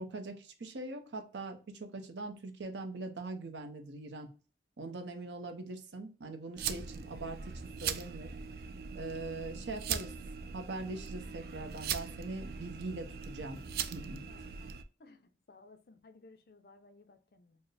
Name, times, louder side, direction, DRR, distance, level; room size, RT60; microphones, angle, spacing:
voice 1, 0.0-4.3 4.8-7.4 7.8-8.3 8.9-10.1 10.5-13.6 13.9-14.2, right 3 dB, 90° right, 0.7 m, -42 dB
sound 1, 6.6-14.8, right 7 dB, 60° right, 0.3 m, -40 dB
voice 2, 14.3-14.7 15.0-17.6, left 3 dB, 60° left, 0.5 m, -59 dB
4.3 x 2.1 x 3.2 m
head